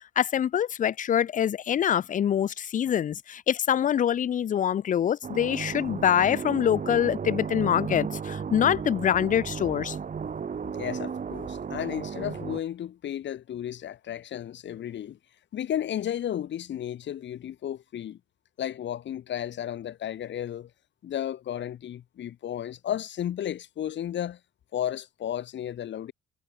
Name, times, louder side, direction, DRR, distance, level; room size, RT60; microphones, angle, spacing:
voice 1, 0.2-10.0, left 9 dB, 40° left, 0.5 m, -25 dB
sound 1, 5.2-12.6, right 6 dB, 40° right, 2.5 m, -34 dB
voice 2, 10.7-15.2 15.5-18.2 18.6-20.7 21.0-24.4 24.7-26.1, left 10 dB, 65° left, 2.2 m, -33 dB
cardioid pair, 90°, 20 cm